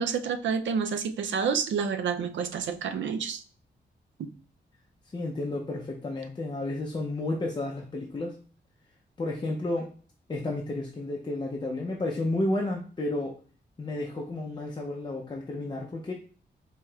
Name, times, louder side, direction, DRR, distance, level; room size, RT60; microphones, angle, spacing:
voice 1, 0.0-3.4, right 6 dB, 90° right, 9 dB, 0.4 m, -29 dB
voice 2, 5.1-8.4 9.2-9.9 10.3-13.4 13.8-16.1, left 2 dB, 25° left, -1 dB, 0.4 m, -31 dB
4.7 x 2.8 x 2.3 m, 0.40 s
wide cardioid pair, 160°, 19 cm